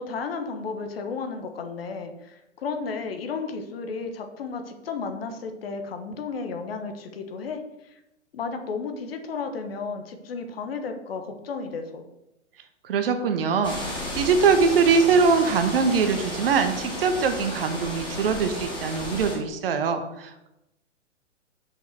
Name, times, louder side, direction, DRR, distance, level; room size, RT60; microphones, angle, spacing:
voice 1, 0.0-8.0 8.3-12.0, left 4 dB, 50° left, 6 dB, 1.3 m, -33 dB
voice 2, 12.8-20.5, right 5 dB, 50° right, 8 dB, 1.1 m, -22 dB
sound 1, 13.6-19.4, left 1 dB, 10° left, 2.4 m, -33 dB
6.5 x 5.5 x 6.1 m, 0.90 s
figure-of-eight pair, 115°, 36 cm